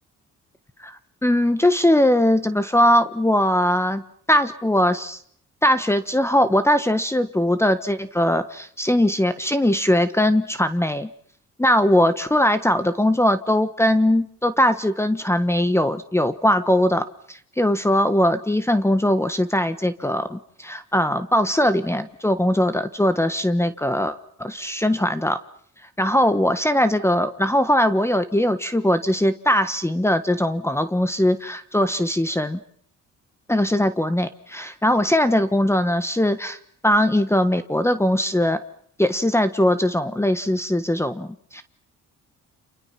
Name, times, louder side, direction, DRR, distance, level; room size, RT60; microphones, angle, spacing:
voice 1, 1.2-4.0 4.3-5.2 5.6-11.1 11.6-25.4 26.0-32.6 33.5-36.6 36.8-38.6 39.0-41.6, left 1 dB, 10° left, 12 dB, 1.3 m, -20 dB
30.0 x 28.0 x 5.9 m, 0.64 s
cardioid pair, 90°, 30 cm